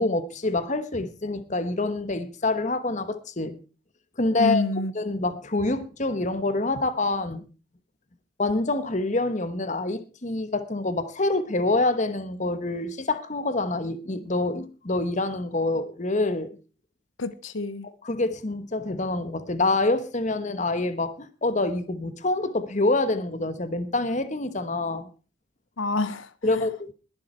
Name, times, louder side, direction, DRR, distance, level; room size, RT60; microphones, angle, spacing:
voice 1, 0.0-3.6 4.2-4.6 4.9-7.4 8.4-16.6 18.0-25.1 26.4-26.9, left 2 dB, 40° left, 1.2 m, -26 dB
voice 2, 4.4-4.9 17.2-17.9 25.8-26.7, left 2 dB, 90° left, 0.9 m, -28 dB
21.0 x 7.2 x 4.4 m
head